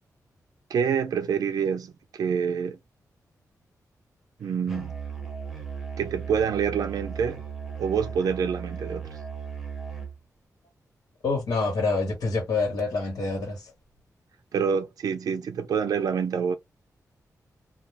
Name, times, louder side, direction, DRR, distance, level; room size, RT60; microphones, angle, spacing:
voice 1, 0.7-2.8 4.4-4.9 6.0-7.4 7.8-9.0 14.5-16.5, right 7 dB, 75° right, 0.4 m, -26 dB
Musical instrument, 4.7-10.2, right 6 dB, ahead, 0.7 m, -36 dB
voice 2, 11.2-13.7, left 3 dB, 85° left, 1.2 m, -27 dB
2.3 x 2.2 x 3.2 m
wide cardioid pair, 175°, 6 cm